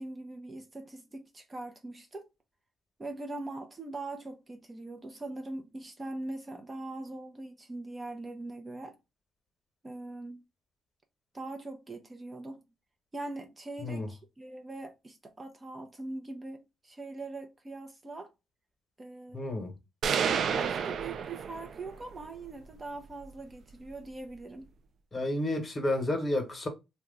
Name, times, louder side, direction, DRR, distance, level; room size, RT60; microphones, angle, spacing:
voice 1, 0.0-2.3 3.0-9.0 9.8-10.4 11.3-12.6 13.1-18.3 19.0-19.5 20.2-24.7, right 2 dB, 25° right, 0.6 m, -42 dB
voice 2, 19.3-19.7 25.1-26.7, left 1 dB, 30° left, 1.1 m, -31 dB
sound 1, 20.0-22.0, right 7 dB, 60° right, 0.3 m, -30 dB
2.9 x 2.2 x 3.7 m
cardioid pair, 90°, 0 cm